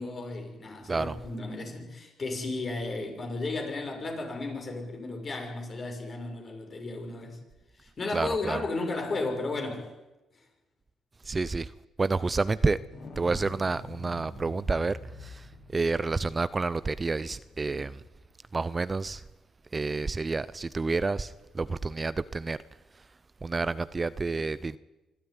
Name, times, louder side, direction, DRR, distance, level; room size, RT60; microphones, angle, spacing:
voice 1, 0.0-7.4 7.8-9.9 10.3-10.4, left 3 dB, 40° left, 5.9 m, -34 dB
voice 2, 8.1-8.6 11.2-11.7 12.0-12.8 13.2-18.0 18.5-19.2 19.7-22.6 22.9-23.0 23.4-24.8, right 3 dB, 25° right, 0.6 m, -29 dB
sound 1, 12.9-18.3 21.4-21.5, left 2 dB, 60° left, 4.5 m, -46 dB
24.5 x 12.5 x 9.6 m
cardioid pair, 90°, 0 cm